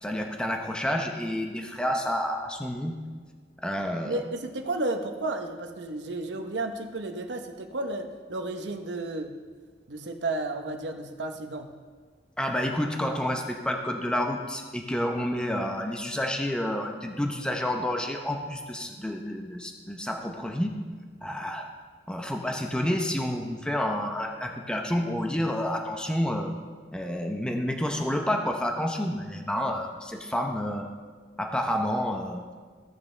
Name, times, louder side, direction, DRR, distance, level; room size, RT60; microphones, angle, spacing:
voice 1, 0.0-3.0 3.6-4.2 12.4-20.7 21.2-21.6 22.1-26.5 26.9-30.9 31.4-32.4, left 1 dB, 5° left, 2 dB, 0.7 m, -29 dB
voice 2, 4.0-9.4 9.9-11.7, right 2 dB, 90° right, 5 dB, 0.9 m, -32 dB
16.0 x 6.9 x 3.3 m, 1.5 s
head